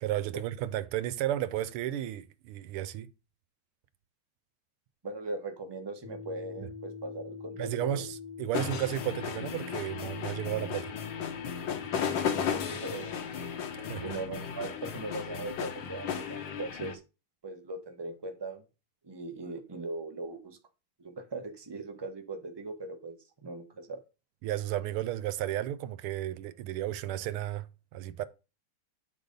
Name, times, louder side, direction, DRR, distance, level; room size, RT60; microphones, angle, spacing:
voice 1, 0.0-3.1 7.6-10.9 13.9-14.0 24.4-27.7 27.9-28.2, right 12 dB, 80° right, 1.6 m, -33 dB
voice 2, 5.0-8.0 12.5-13.2 14.0-17.0 17.4-18.6 19.0-20.6 21.0-24.0, right 2 dB, 25° right, 0.5 m, -39 dB
sound 1, 6.0-14.1, left 6 dB, 50° left, 1.3 m, -44 dB
sound 2, 8.5-16.9, left 7 dB, 65° left, 1.5 m, -35 dB
9.9 x 4.0 x 5.1 m
omnidirectional pair, 2.4 m